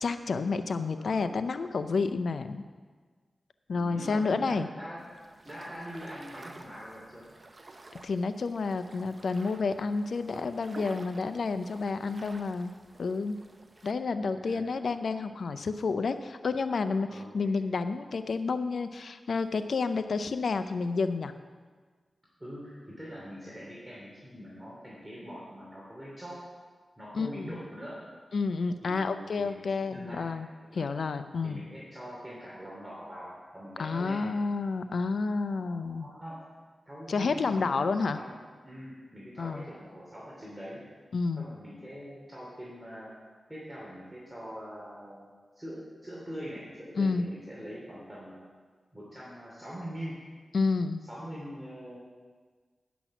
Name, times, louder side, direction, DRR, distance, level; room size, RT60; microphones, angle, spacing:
voice 1, 0.0-2.6 3.7-4.7 8.0-12.7 13.0-13.4 13.8-21.3 27.1-27.6 28.3-30.5 30.7-31.6 33.8-36.1 37.1-38.2 39.4-39.6 41.1-41.5 46.9-47.3 50.5-51.0, left 4 dB, 75° left, 10 dB, 0.5 m, -30 dB
voice 2, 1.0-1.5 3.7-5.1 5.4-7.3 14.3-14.7 17.1-17.5 22.4-26.4 27.0-28.0 28.8-29.5 29.9-30.3 30.6-30.9 31.4-34.2 35.5-36.5 36.9-37.9 38.1-38.3 38.6-40.8 41.4-43.1 43.5-45.3 45.6-48.4 48.9-50.2 51.0-52.0, equal, 15° right, -6 dB, 2.7 m, -43 dB
sound 1, 5.0-13.9, right 2 dB, 40° right, 0.8 m, -51 dB
10.0 x 6.1 x 6.0 m, 1.5 s
cardioid pair, 55°, 0 cm